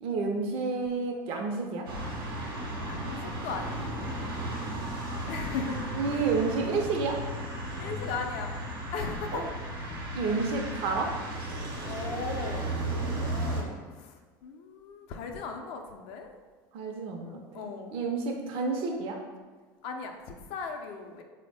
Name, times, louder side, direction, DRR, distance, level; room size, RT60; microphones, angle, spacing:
voice 1, 0.0-1.9 6.0-7.2 9.3-9.4 10.1-11.1 16.7-17.7 17.9-19.2, right 4 dB, 55° right, 2 dB, 0.5 m, -30 dB
sound 1, 1.9-13.6, right 1 dB, 85° right, 0.8 m, -35 dB
voice 2, 2.9-3.8 5.3-6.3 7.8-8.6 8.9-9.8 11.8-16.3 17.2-18.0 19.8-21.2, left 4 dB, 65° left, 4 dB, 0.4 m, -38 dB
3.6 x 2.1 x 3.3 m, 1.4 s
hypercardioid pair, 85°, 12 cm